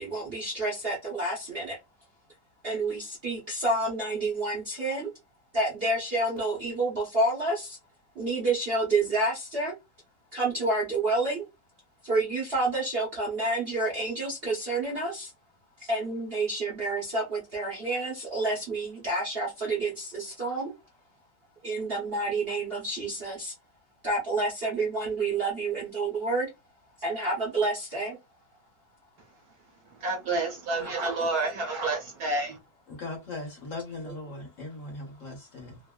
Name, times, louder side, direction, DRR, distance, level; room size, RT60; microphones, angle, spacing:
voice 1, 0.0-1.8 2.6-5.1 5.5-7.8 8.2-9.7 10.3-11.5 12.0-15.3 15.8-20.7 21.6-23.5 24.0-26.5 27.0-28.2 31.0-31.1 34.1-34.2, right 2 dB, 45° right, 0.8 m, -29 dB
voice 2, 30.0-32.6, right 2 dB, 65° right, 1.1 m, -29 dB
voice 3, 32.9-35.8, left 2 dB, 55° left, 1.1 m, -39 dB
3.0 x 2.5 x 2.2 m
omnidirectional pair, 2.0 m